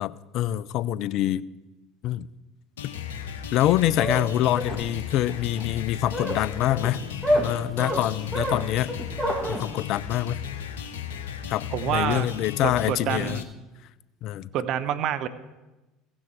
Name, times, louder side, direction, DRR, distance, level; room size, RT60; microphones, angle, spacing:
voice 1, 0.0-1.4 2.0-2.3 3.5-7.0 7.3-8.9 9.5-10.4 11.5-13.4 14.2-14.5, left 13 dB, 55° left, 18 dB, 0.4 m, -25 dB
sound 1, 2.8-13.4, left 8 dB, 80° left, 0.9 m, -36 dB
sound 2, 3.7-9.6, equal, 5° right, 1.8 m, -29 dB
voice 2, 11.7-12.3 12.6-13.4 14.5-15.3, right 10 dB, 55° right, 11 dB, 0.7 m, -27 dB
16.0 x 6.2 x 4.6 m, 1.1 s
hypercardioid pair, 70°, 0 cm